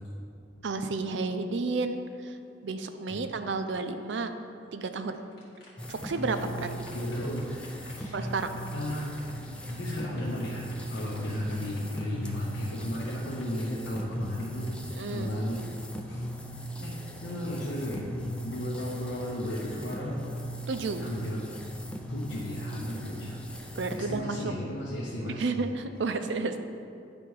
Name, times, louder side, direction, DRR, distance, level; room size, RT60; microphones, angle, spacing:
voice 1, 0.6-2.4 2.6-4.3 4.7-5.2 5.9-6.7 8.1-8.6 14.9-15.3 20.7-21.1 23.8-24.4 25.3-26.6, right 3 dB, 70° right, 8 dB, 0.5 m, -31 dB
sound 1, 5.1-14.7, left 2 dB, 60° left, 1.8 m, -54 dB
sound 2, 5.8-24.2, equal, 5° left, 0.5 m, -39 dB
voice 2, 6.9-8.1 8.7-9.1 9.6-14.7 15.1-15.6 16.0-16.3 16.8-16.9 17.2-18.1 18.4-20.3 21.0-21.5 22.1-23.4 23.9-25.5, left 1 dB, 80° left, -5 dB, 0.9 m, -34 dB
9.8 x 3.4 x 4.7 m, 2.5 s
head